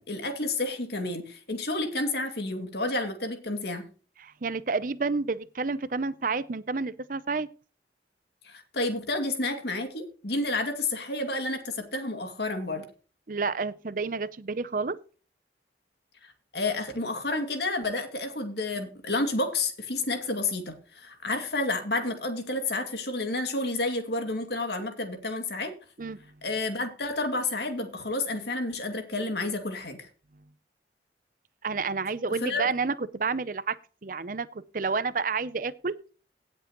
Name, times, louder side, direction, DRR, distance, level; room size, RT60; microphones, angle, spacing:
voice 1, 0.0-3.9 8.4-12.9 16.2-25.7 26.4-30.1 32.4-32.6, left 2 dB, 65° left, 2.4 m, -30 dB
voice 2, 4.2-7.5 13.3-15.0 26.0-26.2 31.6-33.8 34.0-35.9, right 4 dB, 50° right, 0.6 m, -30 dB
17.5 x 7.5 x 3.0 m
head